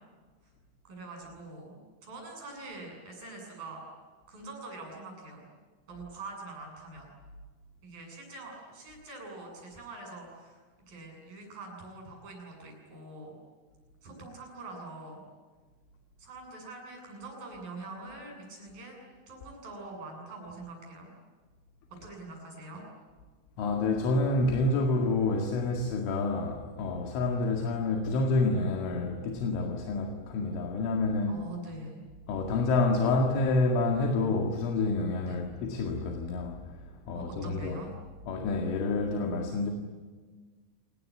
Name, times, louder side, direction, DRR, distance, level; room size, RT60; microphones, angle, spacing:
voice 1, 0.8-3.8 4.3-5.5 5.9-7.1 7.8-10.6 10.9-13.3 14.0-15.2 16.2-19.0 19.3-21.1 22.0-22.8 31.3-32.0 35.2-35.4 37.1-37.9, right 2 dB, 50° right, 9.6 m, -44 dB
voice 2, 23.6-31.4 32.3-37.9 38.3-39.7, left 3 dB, 80° left, 4.6 m, -28 dB
27.5 x 20.5 x 9.9 m
omnidirectional pair, 5.5 m